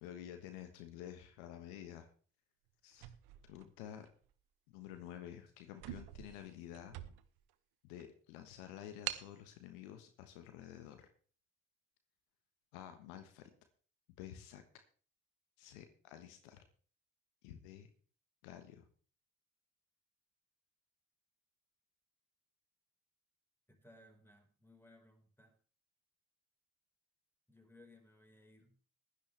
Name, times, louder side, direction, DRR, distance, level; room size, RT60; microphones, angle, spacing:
voice 1, 0.0-2.1 2.8-3.1 3.4-4.1 4.7-7.0 7.8-11.1 12.7-13.5 14.2-14.6 15.6-16.6 17.4-17.9 18.4-18.9, left 10 dB, 80° left, 8 dB, 1.3 m, -51 dB
sound 1, 2.9-4.3 4.9-5.1 5.4-5.5 5.7-7.5 8.0-8.1 9.1-9.4, right 14 dB, 70° right, 1.1 m, -46 dB
voice 2, 23.7-25.6 27.5-28.8, left 1 dB, 5° left, 4 dB, 4.7 m, -62 dB
15.5 x 12.0 x 3.4 m, 0.40 s
hypercardioid pair, 45°, 39 cm